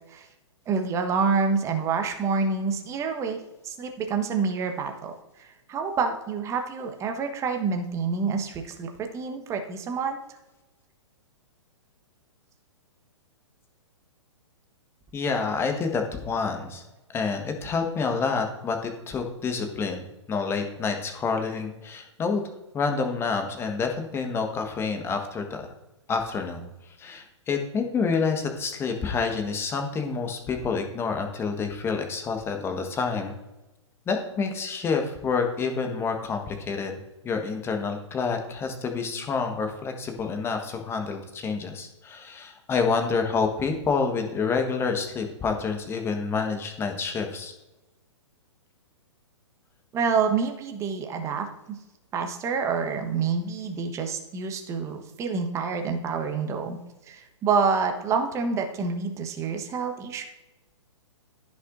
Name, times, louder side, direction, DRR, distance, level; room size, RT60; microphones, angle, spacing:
voice 1, 0.7-3.4 3.6-10.2 49.9-51.5 52.1-56.8 57.1-60.2, right 5 dB, 20° right, 5 dB, 1.2 m, -27 dB
voice 2, 15.1-16.8 17.1-22.4 22.7-25.7 26.1-33.3 34.1-37.0 37.2-47.5, left 5 dB, 15° left, 4 dB, 1.4 m, -28 dB
15.0 x 6.0 x 2.6 m, 1.0 s
figure-of-eight pair, 115°, 16 cm